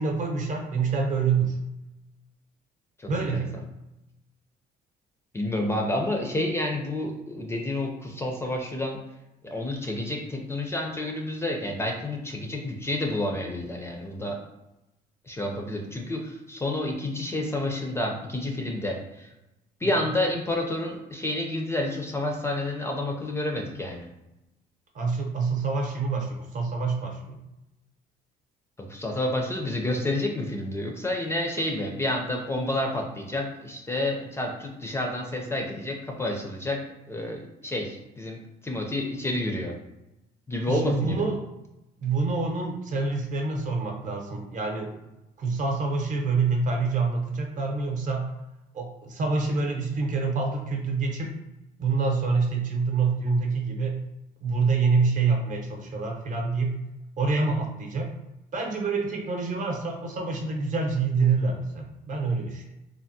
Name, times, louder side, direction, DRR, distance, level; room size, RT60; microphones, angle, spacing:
voice 1, 0.0-1.6 3.1-3.5 24.9-27.4 40.7-41.4 42.0-44.9 45.4-48.2 48.7-51.3 51.8-54.0 54.4-56.8 57.2-58.1 58.5-62.7, right 4 dB, 50° right, 1 dB, 0.7 m, -26 dB
voice 2, 3.0-3.4 5.3-9.0 9.4-14.4 15.3-19.3 19.8-24.1 28.8-36.8 37.1-38.4 38.6-39.7 40.5-41.2, left 1 dB, 15° left, 1 dB, 0.4 m, -29 dB
3.3 x 2.1 x 2.6 m, 0.94 s
cardioid pair, 110°, 17 cm